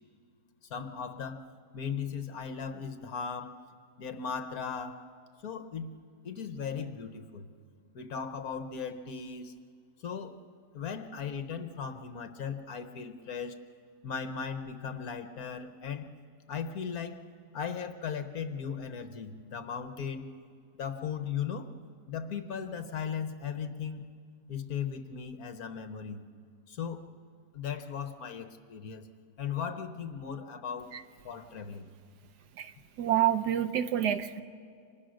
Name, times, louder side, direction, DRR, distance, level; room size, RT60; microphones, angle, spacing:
voice 1, 0.7-1.4 1.7-3.6 4.0-5.0 5.4-6.0 6.2-7.5 7.9-9.5 10.0-10.4 10.7-13.6 14.0-16.1 16.5-17.2 17.5-20.3 20.7-21.7 22.1-24.1 24.5-26.2 26.7-27.1 27.5-29.1 29.4-30.9 31.2-31.9, left 7 dB, 65° left, 8 dB, 1.6 m, -37 dB
voice 2, 32.6-34.4, right 11 dB, 75° right, 10 dB, 1.4 m, -28 dB
29.0 x 26.0 x 6.4 m, 2.2 s
omnidirectional pair, 1.8 m